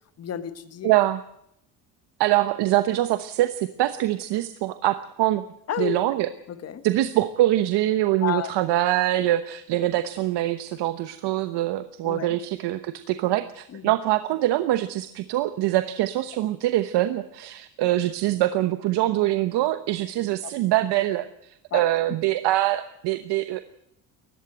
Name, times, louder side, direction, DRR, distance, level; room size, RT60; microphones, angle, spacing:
voice 1, 0.2-0.9 5.7-6.0 6.5-6.8 8.2-8.5 12.0-12.4 13.7-13.9 20.4-20.5 21.7-21.8, left 10 dB, 35° left, 11 dB, 1.5 m, -31 dB
voice 2, 0.8-1.2 2.2-5.4 5.8-6.3 6.8-23.6, right 15 dB, 75° right, 11 dB, 1.1 m, -24 dB
19.0 x 15.0 x 9.0 m, 0.76 s
cardioid pair, 145°, 41 cm